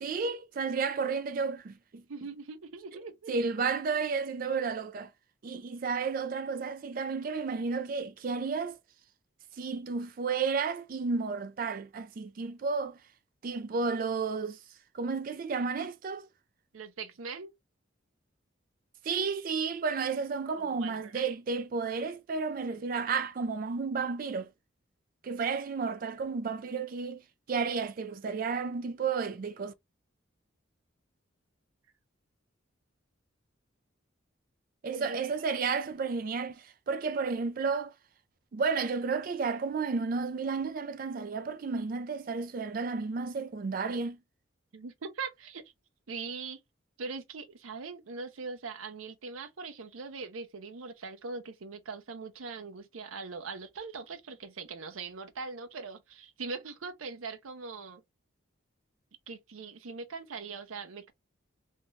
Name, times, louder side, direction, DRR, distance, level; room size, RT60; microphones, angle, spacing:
voice 1, 0.0-2.0 3.3-5.1 5.4-8.8 9.6-13.0 13.4-14.6 14.9-16.3 19.0-24.5 25.2-27.2 27.5-29.7 34.8-37.9 38.5-44.2, right 5 dB, 45° right, 0.3 m, -32 dB
voice 2, 2.1-3.3 16.7-17.5 20.6-21.3 34.9-35.2 44.7-45.7 46.1-46.6 47.0-58.0 59.3-61.1, right 4 dB, 90° right, 0.6 m, -41 dB
2.6 x 2.2 x 3.0 m
head